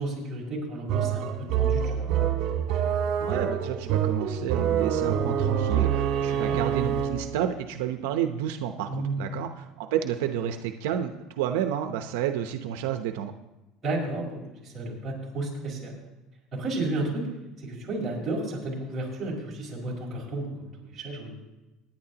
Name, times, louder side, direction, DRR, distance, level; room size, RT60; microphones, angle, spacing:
voice 1, 0.0-2.1 6.3-6.6 8.9-9.3 13.8-15.9 16.5-17.3 17.6-21.4, right 2 dB, 20° right, -4 dB, 5.0 m, -32 dB
sound 1, 0.9-7.4, right 8 dB, 55° right, 2.2 m, -26 dB
voice 2, 3.2-13.3, right 10 dB, 90° right, 6 dB, 0.8 m, -30 dB
24.0 x 10.5 x 2.9 m, 1.0 s
cardioid pair, 155°, 0 cm